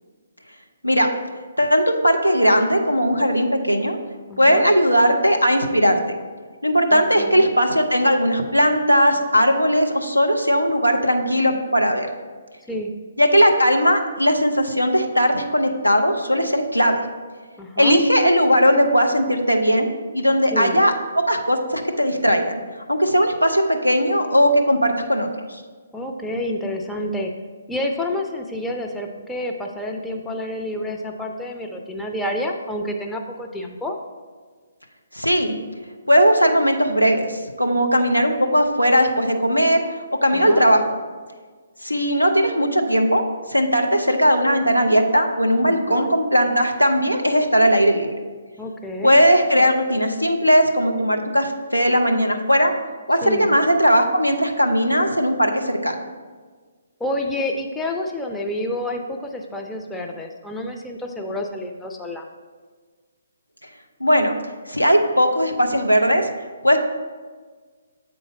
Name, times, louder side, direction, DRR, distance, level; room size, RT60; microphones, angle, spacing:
voice 1, 1.6-4.0 4.4-6.2 6.6-12.1 13.2-17.0 17.8-22.5 22.9-25.6 35.1-35.6 36.1-39.8 40.2-40.8 41.8-43.2 43.5-48.1 49.0-52.7 53.1-56.0 64.0-64.4 64.7-66.3 66.6-66.8, equal, 90° left, 3 dB, 0.7 m, -18 dB
voice 2, 4.3-4.7 6.9-7.5 12.7-12.9 17.6-18.0 20.5-20.8 25.9-27.3 27.7-34.0 40.3-40.7 45.7-46.1 48.6-49.2 53.2-53.5 57.0-62.2, left 1 dB, 5° left, 1 dB, 0.4 m, -29 dB
7.6 x 4.0 x 4.8 m, 1.5 s
figure-of-eight pair, 135°, 0 cm